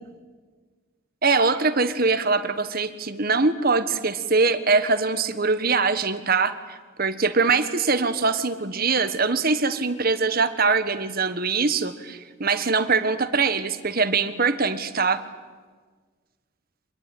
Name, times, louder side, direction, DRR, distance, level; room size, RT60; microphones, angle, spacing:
voice 1, 1.2-15.2, right 4 dB, 45° right, 11 dB, 1.4 m, -23 dB
25.5 x 21.5 x 9.3 m, 1.5 s
head